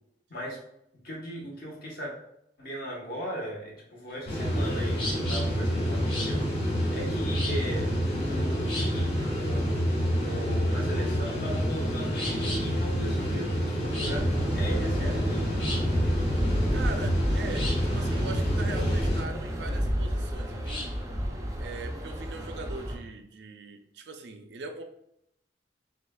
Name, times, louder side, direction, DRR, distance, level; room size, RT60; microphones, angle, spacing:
voice 1, 0.3-0.6 1.0-2.1 2.6-9.8 10.2-15.5, equal, 55° left, -2 dB, 1.2 m, -38 dB
sound 1, 4.1-21.0, left 2 dB, 30° left, 1.4 m, -40 dB
sound 2, 4.3-19.2, equal, 80° left, 1.3 m, -28 dB
sound 3, 14.1-23.0, equal, 20° right, 0.4 m, -31 dB
voice 2, 16.7-20.9 21.6-24.8, right 3 dB, 75° right, 6 dB, 0.4 m, -41 dB
6.3 x 2.4 x 2.3 m, 0.77 s
head